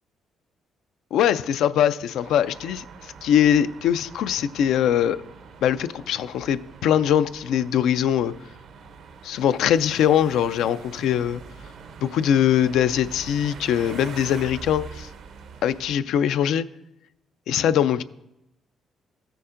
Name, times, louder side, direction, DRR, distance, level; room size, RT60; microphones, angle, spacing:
voice 1, 1.1-5.2 5.6-8.3 9.2-11.4 12.0-15.1 15.6-16.7 17.5-18.0, left 9 dB, 80° left, 0.3 m, -22 dB
sound 1, 2.2-16.0, right 5 dB, 70° right, 0.6 m, -43 dB
14.0 x 6.8 x 2.5 m
cardioid pair, 90°, 0 cm